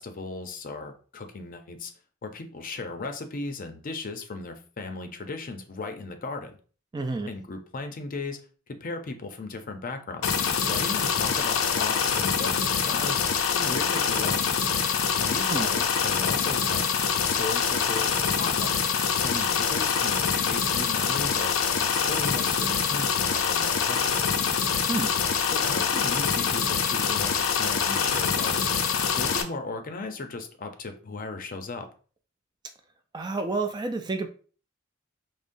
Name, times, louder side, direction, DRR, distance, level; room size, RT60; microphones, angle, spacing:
voice 1, 0.0-1.9 2.2-6.6 7.3-8.4 8.7-10.3 10.7-13.2 13.5-14.4 15.2-16.9 17.2-18.9 19.1-21.5 21.9-24.3 25.5-28.8 29.1-31.9, left 3 dB, 45° left, 6 dB, 0.5 m, -36 dB
voice 2, 6.9-7.3 15.5-15.7 24.9-25.1 33.1-34.3, right 3 dB, 20° right, 6 dB, 0.3 m, -29 dB
sound 1, 10.2-29.4, left 6 dB, 90° left, 0.5 m, -25 dB
5.1 x 2.0 x 2.6 m, 0.40 s
head